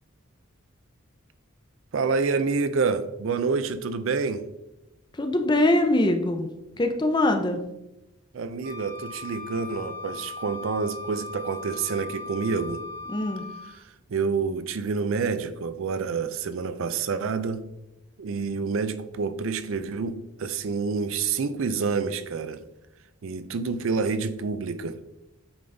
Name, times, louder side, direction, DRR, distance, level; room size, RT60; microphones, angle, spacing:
voice 1, 1.9-4.4 8.3-12.8 13.8-17.6 18.2-22.6 23.2-25.0, right 5 dB, 65° right, 0.4 m, -28 dB
voice 2, 5.1-6.5 6.8-7.6 13.1-13.4, left 1 dB, 20° left, 0.5 m, -22 dB
Wind instrument woodwind instrument, 8.6-13.8, left 3 dB, 45° right, 1.6 m, -38 dB
8.7 x 3.9 x 3.3 m
head